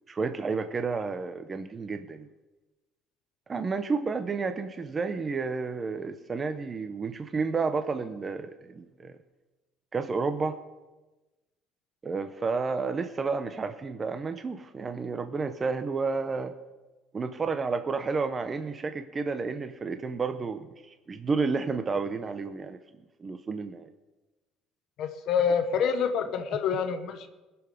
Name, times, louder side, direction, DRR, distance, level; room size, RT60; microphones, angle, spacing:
voice 1, 0.1-2.3 3.5-9.2 9.9-10.6 12.0-16.5 17.1-22.8 23.2-23.9, right 4 dB, 20° right, 9 dB, 0.5 m, -31 dB
voice 2, 25.0-27.3, left 6 dB, 55° left, 7 dB, 0.9 m, -27 dB
20.0 x 6.9 x 5.2 m, 1.1 s
cardioid pair, 160°, 0 cm